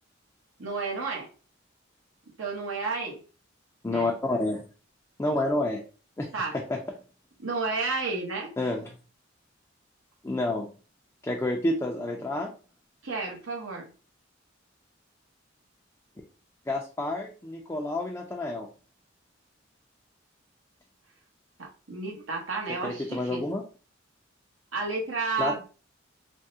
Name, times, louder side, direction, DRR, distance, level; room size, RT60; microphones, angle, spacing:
voice 1, 0.6-1.3 2.4-3.2 3.9-4.1 6.3-6.5 7.4-8.5 13.0-13.9 21.6-23.4 24.7-25.6, right 4 dB, 90° right, -1 dB, 1.0 m, -31 dB
voice 2, 3.8-4.6 5.2-5.8 6.2-6.3 6.7-6.8 8.6-8.8 10.2-10.7 11.2-12.5 16.7-18.7 22.8-23.6 25.4-25.6, left 2 dB, 15° left, 0 dB, 0.3 m, -29 dB
3.4 x 2.1 x 2.6 m, 0.36 s
head